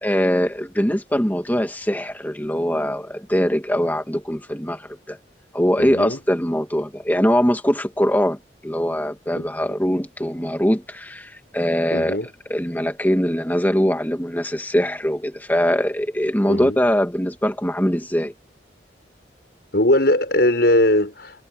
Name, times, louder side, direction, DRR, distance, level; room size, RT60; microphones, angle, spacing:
voice 1, 0.0-5.2 5.5-12.2 12.5-18.3, equal, 10° left, 1.9 m, -22 dB
voice 2, 5.8-6.2 9.4-9.5 11.9-12.3 16.5-16.8 19.7-21.4, left 1 dB, 60° left, 6.5 m, -19 dB
head